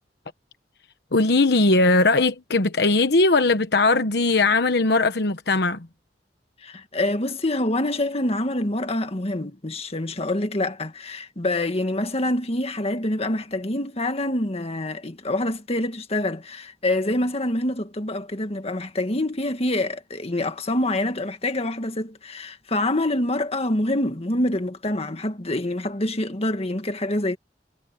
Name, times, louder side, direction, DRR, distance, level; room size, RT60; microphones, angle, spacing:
voice 1, 1.1-5.9, left 3 dB, 70° left, 1.1 m, -19 dB
voice 2, 6.6-27.4, left 1 dB, 35° left, 1.9 m, -26 dB
head